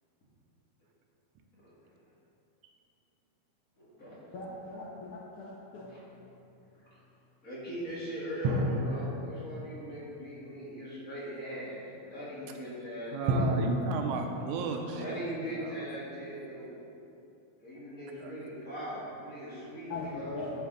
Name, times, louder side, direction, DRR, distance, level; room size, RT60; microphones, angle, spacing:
voice 1, 3.8-4.3 5.7-6.0 6.7-7.0 7.4-11.7 12.0-13.5 14.9-16.7 17.6-20.5, equal, 30° left, -8 dB, 2.0 m, -40 dB
voice 2, 4.3-5.9 19.9-20.5, left 3 dB, 70° left, -5 dB, 1.3 m, -40 dB
sound 1, 5.7-6.7 8.4-10.8 13.3-16.3, right 1 dB, 70° right, 1.8 m, -34 dB
voice 3, 13.1-15.2 15.5-16.1 18.2-18.3, right 5 dB, 90° right, 4 dB, 2.1 m, -35 dB
11.0 x 5.5 x 3.9 m, 2.8 s
omnidirectional pair, 3.3 m